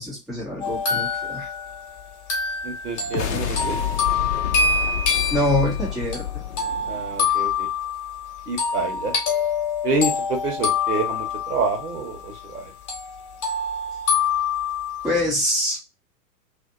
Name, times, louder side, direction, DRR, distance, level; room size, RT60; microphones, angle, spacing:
voice 1, 0.0-1.5 5.3-6.2 15.0-15.8, left 1 dB, ahead, -5 dB, 0.6 m, -24 dB
sound 1, 0.6-12.6 12.9-15.2, left 5 dB, 25° left, 1.0 m, -26 dB
voice 2, 2.6-3.8 6.8-7.7 8.5-9.1 9.8-12.6, right 3 dB, 70° right, 3 dB, 1.2 m, -27 dB
sound 2, 3.0-7.5, left 10 dB, 45° left, 0.5 m, -29 dB
2.7 x 2.4 x 2.4 m, 0.23 s
figure-of-eight pair, 105°, 48 cm